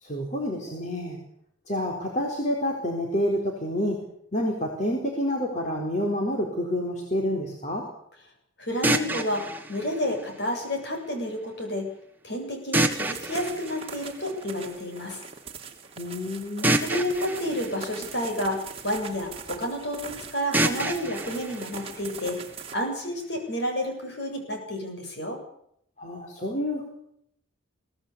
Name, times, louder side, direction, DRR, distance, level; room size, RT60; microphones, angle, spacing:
voice 1, 0.0-1.2 1.7-4.0 4.3-7.9 16.0-16.8 26.0-26.8, left 1 dB, 35° left, 0 dB, 4.3 m, -28 dB
voice 2, 8.6-9.4 9.7-11.8 12.2-15.2 16.6-22.4 22.7-25.4, equal, 55° left, 3 dB, 7.8 m, -30 dB
sound 1, 8.8-10.9 12.7-14.7 16.6-18.8 20.5-22.6, right 1 dB, 10° right, 1.7 m, -29 dB
sound 2, 12.9-22.7, right 5 dB, 30° right, 2.8 m, -41 dB
23.5 x 18.0 x 8.3 m, 0.72 s
head